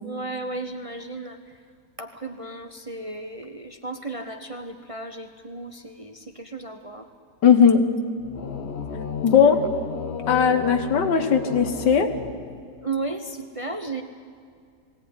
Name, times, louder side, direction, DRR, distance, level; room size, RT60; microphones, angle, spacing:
voice 1, 0.0-1.4 2.0-7.1 12.8-14.0, right 3 dB, 30° right, 6 dB, 0.7 m, -34 dB
voice 2, 7.4-7.8 9.2-9.6 10.3-12.1, left 7 dB, 90° left, 8 dB, 2.0 m, -18 dB
sound 1, 8.2-12.9, left 6 dB, 45° left, 1.1 m, -33 dB
20.5 x 17.0 x 9.7 m, 2.2 s
omnidirectional pair, 1.8 m